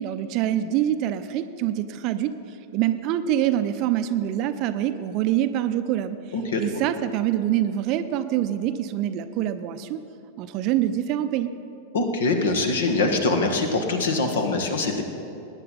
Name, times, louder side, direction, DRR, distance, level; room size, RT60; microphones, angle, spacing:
voice 1, 0.0-2.3 2.7-6.2 6.6-10.0 10.4-11.5, right 11 dB, 40° right, 11 dB, 0.6 m, -25 dB
voice 2, 11.9-15.0, left 3 dB, 65° left, 5 dB, 1.5 m, -23 dB
20.5 x 9.9 x 4.1 m, 2.8 s
figure-of-eight pair, 90°, 0 cm